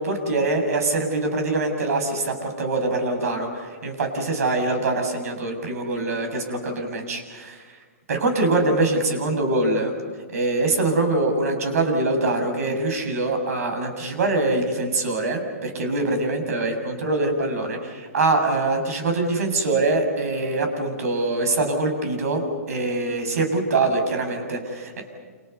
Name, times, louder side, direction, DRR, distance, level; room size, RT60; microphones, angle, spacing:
voice 1, 0.0-7.6 8.1-9.9 10.3-16.7 17.0-22.4 22.7-25.0, right 2 dB, 70° right, 5 dB, 7.3 m, -24 dB
29.5 x 28.5 x 5.6 m, 1.5 s
hypercardioid pair, 140°, 9 cm